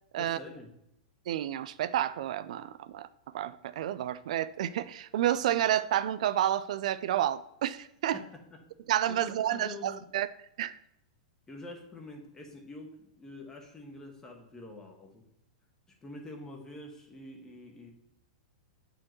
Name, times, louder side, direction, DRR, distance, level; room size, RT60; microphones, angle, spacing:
voice 1, 0.2-0.7 8.1-8.7 9.1-10.1 11.5-15.2 16.0-17.9, left 2 dB, 15° left, 1 dB, 1.4 m, -46 dB
voice 2, 1.3-3.1 3.3-8.2 8.9-10.3 10.6-10.8, right 11 dB, 70° right, 14 dB, 0.4 m, -30 dB
8.5 x 4.9 x 3.1 m, 0.81 s
hypercardioid pair, 135°, 4 cm